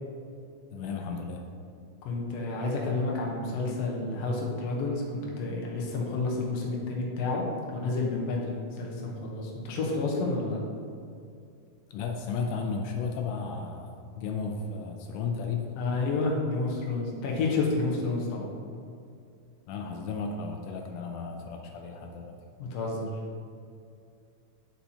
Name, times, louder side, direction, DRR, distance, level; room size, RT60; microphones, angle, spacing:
voice 1, 0.7-1.4 11.9-15.7 19.7-22.4, left 5 dB, 85° left, 3 dB, 2.1 m, -34 dB
voice 2, 2.0-7.4 7.7-10.6 15.8-18.5 22.6-23.1, left 3 dB, 65° left, -2 dB, 1.9 m, -30 dB
11.5 x 4.4 x 2.8 m, 2.3 s
omnidirectional pair, 3.5 m